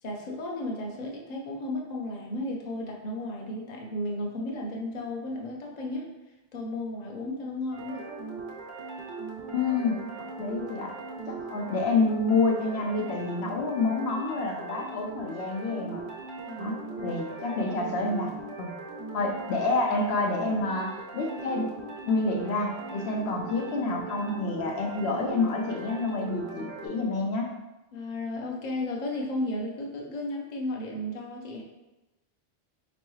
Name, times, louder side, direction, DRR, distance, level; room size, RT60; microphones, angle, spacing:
voice 1, 0.0-6.1 6.5-8.0 16.5-17.2 27.9-31.6, left 1 dB, 45° left, -1 dB, 0.8 m, -34 dB
sound 1, 7.7-26.9, right 4 dB, 90° right, 1.2 m, -40 dB
voice 2, 9.5-10.1 10.4-10.9 11.2-16.0 16.6-18.3 18.6-18.7 19.1-21.7 22.0-27.5, left 3 dB, 75° left, 0 dB, 0.9 m, -28 dB
4.5 x 3.1 x 3.1 m, 1.0 s
omnidirectional pair, 1.1 m